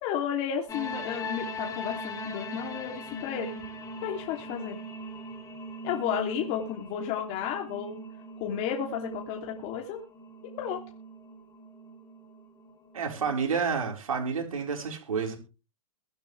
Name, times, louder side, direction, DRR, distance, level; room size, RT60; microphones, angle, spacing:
voice 1, 0.0-3.6 4.0-4.8 5.8-8.0 8.4-10.0 10.6-10.8, left 9 dB, 40° left, 3.1 m, -32 dB
sound 1, 0.7-13.4, equal, 20° left, 3.5 m, -41 dB
voice 2, 12.9-15.4, right 6 dB, 80° right, 4.8 m, -29 dB
23.0 x 9.2 x 3.4 m
hypercardioid pair, 125°, 18 cm